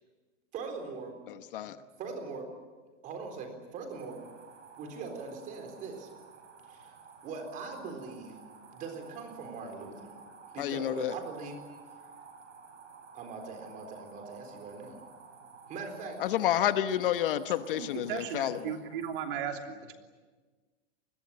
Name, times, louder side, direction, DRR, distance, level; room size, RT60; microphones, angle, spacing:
voice 1, 0.5-1.2 1.6-1.7 2.0-2.5 3.0-4.2 4.8-6.1 6.7-8.4 8.7-10.2 10.5-11.6 13.1-15.0 15.7-16.2, right 4 dB, 20° right, 5 dB, 4.0 m, -41 dB
voice 2, 1.3-1.8 10.6-11.1 16.2-18.8, left 11 dB, 50° left, 11 dB, 1.0 m, -30 dB
sound 1, 3.9-19.3, right 5 dB, 80° right, 7.7 m, -53 dB
voice 3, 17.7-20.0, right 8 dB, 45° right, 4 dB, 3.1 m, -36 dB
28.0 x 21.5 x 8.8 m, 1.4 s
supercardioid pair, 170°, 35 cm